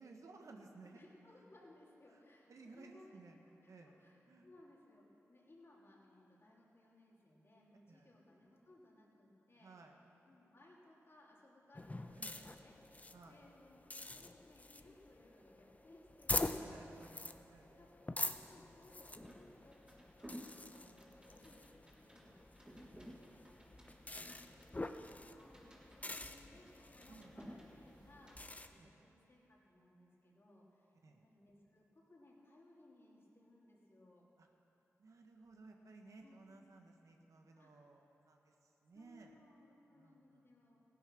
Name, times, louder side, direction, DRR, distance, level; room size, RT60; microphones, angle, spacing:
voice 1, 0.0-1.0 2.1-2.2 2.5-3.4 3.7-4.0 4.3-4.5 7.9-8.1 9.6-10.0 12.2-12.6 13.1-13.4 16.5-17.9 23.7-25.2 27.1-27.4 28.8-29.1 31.0-31.3 34.4-34.5 35.0-39.4 39.9-40.8, right 3 dB, 75° right, 3 dB, 1.3 m, -59 dB
voice 2, 0.8-3.2 3.6-9.8 10.2-12.8 13.3-17.2 17.5-19.9 20.2-22.9 25.2-30.9 31.2-34.3 36.2-36.4 37.6-37.8 38.9-40.8, left 1 dB, 50° left, -4 dB, 3.1 m, -64 dB
sound 1, 11.7-28.7, left 2 dB, 25° left, 0.7 m, -46 dB
sound 2, 18.7-28.4, equal, 15° right, 3.1 m, -57 dB
16.0 x 10.0 x 6.0 m, 3.0 s
cardioid pair, 50°, 6 cm